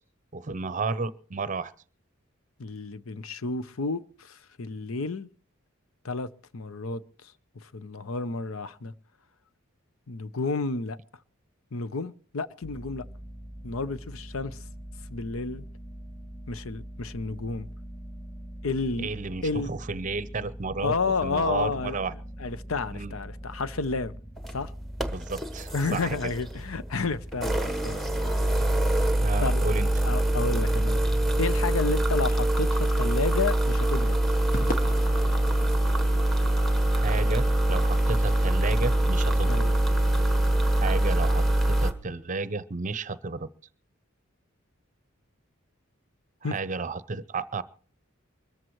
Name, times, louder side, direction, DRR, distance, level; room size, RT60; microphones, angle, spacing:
voice 1, 0.3-1.7 19.0-20.9 21.2-22.1 22.9-23.1 25.1-26.3 29.2-29.9 36.9-39.6 40.7-43.5 46.4-47.6, right 4 dB, 35° right, 0.7 m, -32 dB
voice 2, 2.6-5.3 6.0-8.9 10.1-11.0 11.7-13.1 13.6-14.6 15.1-15.6 16.5-17.7 18.6-19.1 19.4-19.7 20.8-22.0 22.4-24.1 24.5-24.7 25.7-28.5 29.4-29.6 30.0-31.0 31.4-34.2 39.4-39.7 46.4-46.6, left 4 dB, 80° left, 0.7 m, -31 dB
sound 1, 12.6-32.2, equal, 20° left, 3.2 m, -42 dB
sound 2, 24.4-24.5 25.0-26.6 27.3-41.9, right 1 dB, ahead, 1.1 m, -24 dB
Crowd / Fireworks, 34.5-39.0, left 1 dB, 40° left, 1.1 m, -41 dB
24.0 x 14.0 x 3.1 m
head